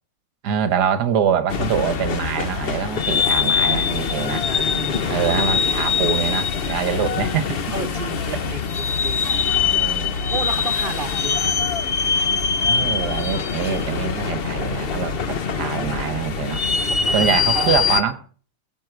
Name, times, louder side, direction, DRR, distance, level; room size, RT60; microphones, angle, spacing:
voice 1, 0.4-4.5 5.1-7.6 9.3-10.2 12.7-16.6 17.1-18.2, right 8 dB, 55° right, 1.7 m, -24 dB
sound 1, 1.5-18.0, left 6 dB, 55° left, 0.6 m, -23 dB
sound 2, 3.2-16.5, left 10 dB, 70° left, 1.5 m, -38 dB
voice 2, 4.5-5.2 5.5-5.6 7.7-9.3 10.3-11.7 15.1-16.0 16.7-17.9, right 4 dB, 25° right, 1.6 m, -33 dB
21.5 x 8.3 x 4.6 m
omnidirectional pair, 2.2 m